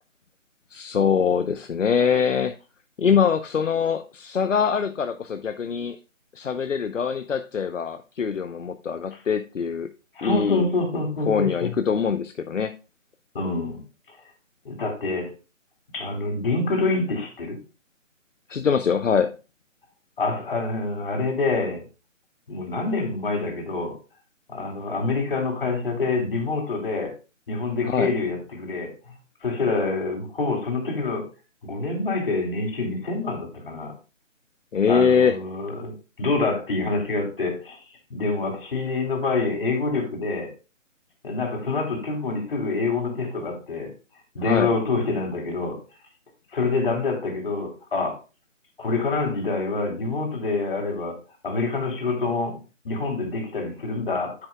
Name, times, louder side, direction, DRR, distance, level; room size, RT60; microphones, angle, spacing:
voice 1, 0.7-2.5 3.0-6.0 6.3-9.9 10.2-10.7 11.3-12.7 18.5-19.3 27.8-28.1 34.7-35.4 44.4-44.7, left 6 dB, 70° left, 9 dB, 0.8 m, -23 dB
voice 2, 10.1-11.7 13.3-13.8 14.1-14.2 14.6-15.3 15.9-17.6 20.2-21.8 22.5-24.0 24.5-27.1 27.5-28.9 29.4-31.3 31.6-33.9 34.8-37.8 38.1-40.5 41.2-43.9 44.3-45.8 46.5-48.2 48.8-51.2 51.4-52.6 52.8-54.5, left 3 dB, 45° left, 2 dB, 2.9 m, -26 dB
9.5 x 8.9 x 2.2 m, 0.32 s
figure-of-eight pair, 155°, 39 cm